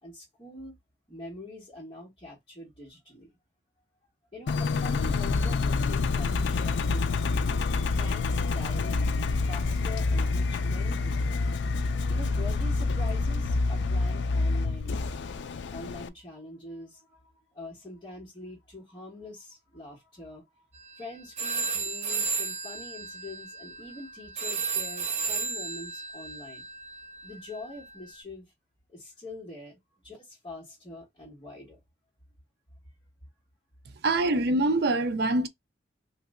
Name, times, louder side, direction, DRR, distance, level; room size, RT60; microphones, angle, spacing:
voice 1, 0.0-0.7 1.1-3.3 4.3-9.0 9.5-11.4 12.1-15.1 15.7-20.6 21.0-26.6 27.2-28.5 28.9-29.8 30.0-31.8, left 2 dB, 20° left, 1.6 m, -44 dB
Engine, 4.5-16.1, left 3 dB, 70° left, 0.4 m, -27 dB
sound 1, 20.8-21.0 21.4-28.0, right 4 dB, 35° right, 0.8 m, -33 dB
voice 2, 34.0-35.5, right 2 dB, 60° right, 0.4 m, -24 dB
3.2 x 2.8 x 2.5 m
head